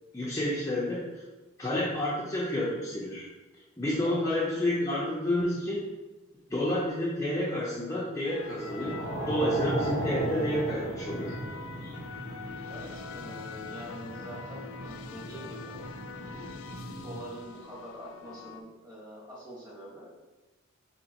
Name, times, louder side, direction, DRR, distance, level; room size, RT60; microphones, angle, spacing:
voice 1, 0.1-1.1 1.6-3.3 3.8-5.8 6.5-9.0 9.3-11.3 11.8-11.9, left 1 dB, 15° left, -6 dB, 0.6 m, -29 dB
sound 1, 8.2-18.6, left 5 dB, 80° left, 0.3 m, -44 dB
sound 2, 8.5-17.3, right 1 dB, 65° right, 1.1 m, -37 dB
voice 2, 12.7-15.8 17.0-20.3, equal, 20° right, -7 dB, 1.5 m, -45 dB
5.1 x 2.8 x 2.9 m, 1.1 s
head